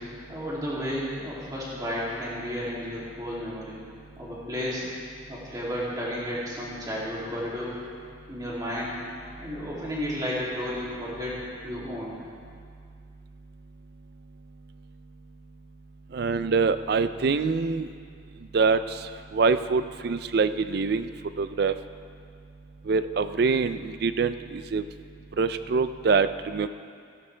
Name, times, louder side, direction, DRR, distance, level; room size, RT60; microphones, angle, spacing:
voice 1, 0.0-3.8 4.2-4.9 5.3-7.8 8.3-9.0 9.4-12.2, equal, 20° right, -7 dB, 2.7 m, -33 dB
voice 2, 16.1-17.9 18.5-18.8 19.3-21.1 21.4-21.7 22.9-24.8 25.4-26.7, right 4 dB, 50° right, 12 dB, 0.4 m, -24 dB
16.0 x 12.0 x 3.3 m, 2.2 s
head